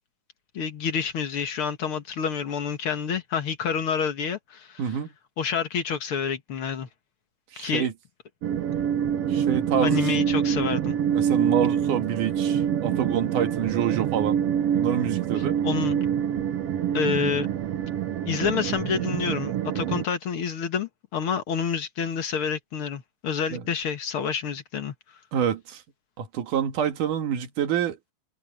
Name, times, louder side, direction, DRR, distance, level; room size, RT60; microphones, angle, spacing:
voice 1, 0.5-4.8 5.4-6.9 7.6-7.9 9.8-11.0 15.6-16.0 16.9-17.5 18.3-24.9, left 6 dB, 50° left, 2.0 m, -28 dB
voice 2, 4.8-5.1 7.5-7.9 9.3-10.1 11.1-14.4 14.7-15.6 23.5-23.6 25.3-25.8 26.2-28.0, right 9 dB, 90° right, 3.4 m, -27 dB
sound 1, 8.4-20.0, right 9 dB, 60° right, 1.9 m, -26 dB
omnidirectional pair, 3.5 m